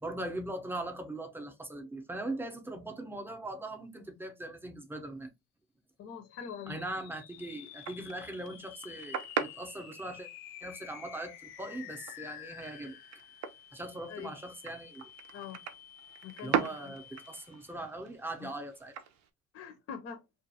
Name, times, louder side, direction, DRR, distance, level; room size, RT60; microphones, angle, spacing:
voice 1, 0.0-5.3 6.7-10.3 10.6-13.0 13.7-15.1 16.4-18.9, right 1 dB, 5° right, 0.6 m, -40 dB
voice 2, 6.0-6.8 14.1-14.3 15.3-15.6 16.2-16.9 19.5-20.2, left 7 dB, 45° left, 0.6 m, -43 dB
sound 1, 6.2-17.8, left 10 dB, 80° left, 0.8 m, -50 dB
sound 2, 7.3-19.3, right 8 dB, 55° right, 0.6 m, -41 dB
2.5 x 2.5 x 2.6 m
supercardioid pair, 95°, 33 cm